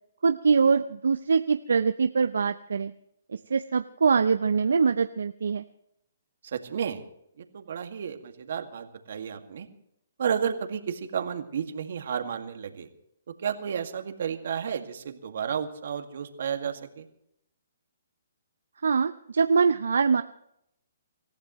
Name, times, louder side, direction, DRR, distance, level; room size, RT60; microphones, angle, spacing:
voice 1, 0.2-2.9 3.3-5.6 18.8-20.2, right 5 dB, 80° right, 10 dB, 0.6 m, -23 dB
voice 2, 6.4-7.0 7.4-9.7 10.2-12.9 13.4-17.1, right 7 dB, 65° right, 6 dB, 2.0 m, -32 dB
26.0 x 15.0 x 3.1 m, 0.76 s
hypercardioid pair, 150°, 0 cm